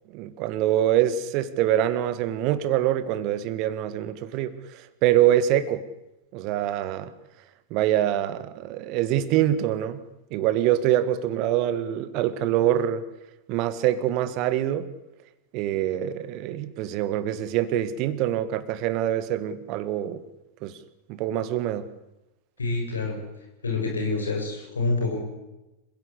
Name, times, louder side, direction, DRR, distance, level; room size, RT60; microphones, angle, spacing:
voice 1, 0.1-5.8 6.3-7.1 7.7-10.0 10.3-13.0 13.5-14.9 15.5-20.2 20.6-20.8 21.1-21.9, right 12 dB, 40° right, 15 dB, 1.7 m, -25 dB
voice 2, 22.6-23.2 23.6-25.2, left 3 dB, 75° left, 1 dB, 6.7 m, -27 dB
27.0 x 16.0 x 8.3 m, 0.97 s
figure-of-eight pair, 90°, 0 cm